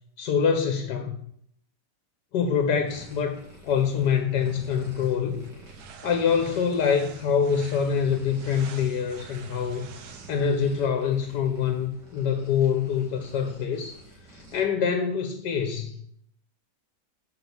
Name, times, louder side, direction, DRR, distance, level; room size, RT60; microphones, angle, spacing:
voice 1, 0.2-1.2 2.3-5.4 6.0-9.9 10.3-14.0 14.3-16.0, left 7 dB, 75° left, 1.4 m, -25 dB
sound 1, 2.8-14.6, equal, 90° right, 2.6 m, -50 dB
sound 2, 5.0-10.6, right 6 dB, 70° right, 1.3 m, -46 dB
6.2 x 5.2 x 6.9 m
omnidirectional pair, 1.8 m